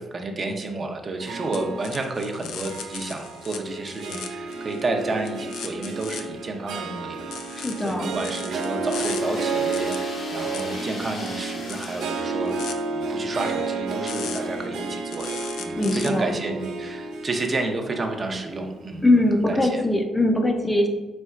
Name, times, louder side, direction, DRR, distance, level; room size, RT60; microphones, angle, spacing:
voice 1, 0.0-15.3 15.6-19.0 19.4-19.8, right 2 dB, 35° right, 3 dB, 0.6 m, -31 dB
Harp, 1.2-19.7, right 3 dB, 80° right, 0.4 m, -32 dB
sound 1, 1.5-3.6 3.9-4.8 5.2-6.2 7.3-9.2 9.7-10.0 10.5-10.6 11.3-12.7 14.1-14.6 15.1-16.1, left 8 dB, 85° left, 0.4 m, -37 dB
voice 2, 7.6-8.2 15.7-16.3 19.0-20.9, left 1 dB, 15° left, 3 dB, 0.5 m, -21 dB
sound 2, 8.9-13.0, left 3 dB, 55° left, 0.7 m, -40 dB
4.2 x 4.1 x 2.4 m, 1.2 s
cardioid pair, 90°, 0 cm